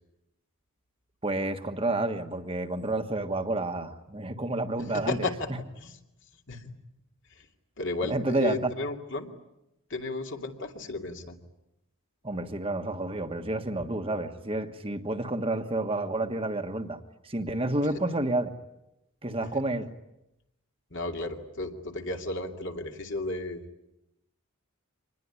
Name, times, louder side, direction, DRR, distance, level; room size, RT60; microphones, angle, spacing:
voice 1, 1.2-5.3 8.0-8.7 12.2-17.0 17.2-18.5 19.2-19.9, right 2 dB, 25° right, 6 dB, 1.4 m, -30 dB
voice 2, 4.9-5.5 5.8-6.0 6.5-6.7 7.4-7.5 7.8-9.3 9.9-11.4 17.8-17.9 20.9-23.6, left 2 dB, 55° left, 3 dB, 2.7 m, -34 dB
25.5 x 20.5 x 9.7 m, 0.89 s
head